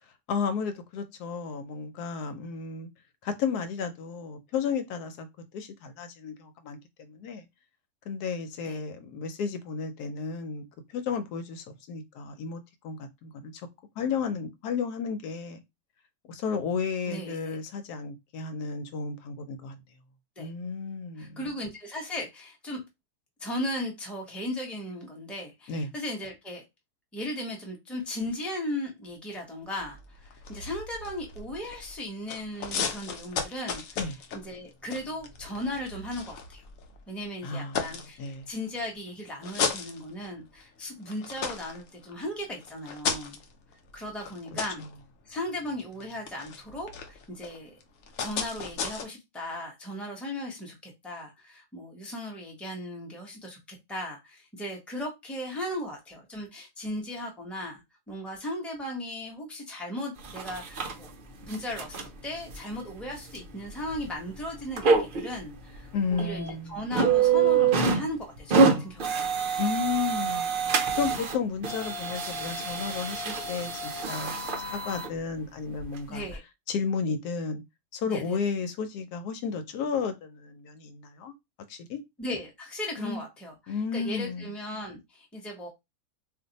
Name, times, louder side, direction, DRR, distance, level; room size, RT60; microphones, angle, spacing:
voice 1, 0.3-2.9 3.2-5.3 5.5-7.4 8.1-10.6 10.9-13.5 14.0-15.6 16.3-19.8 20.4-21.4 25.7-25.9 34.0-34.1 37.4-38.5 44.8-44.9 65.9-66.8 69.6-70.5 71.0-76.3 76.7-77.6 77.9-81.3 81.7-82.0 83.0-83.2 83.7-84.5, left 5 dB, 85° left, 1.2 m, -33 dB
voice 2, 17.1-17.6 20.4-20.5 21.2-22.8 23.4-26.6 27.1-36.6 37.1-43.4 43.9-44.8 45.2-47.7 48.2-61.1 61.4-69.0 76.1-76.4 78.1-78.4 82.2-85.7, left 1 dB, ahead, 0.7 m, -37 dB
sound 1, 29.8-32.0 32.3-37.0 37.4-38.7 39.2-40.6 41.0-49.0, left 6 dB, 65° left, 1.0 m, -36 dB
sound 2, 60.2-60.9 61.4-62.1 62.5-62.6 63.4-63.5 63.9-64.0 64.8-65.3 65.8-65.9 66.2-66.5 66.9-68.1 68.4-71.4 71.6-75.1 75.8-75.9 76.3-76.4, right 5 dB, 70° right, 0.5 m, -26 dB
2.6 x 2.4 x 3.9 m
omnidirectional pair, 1.6 m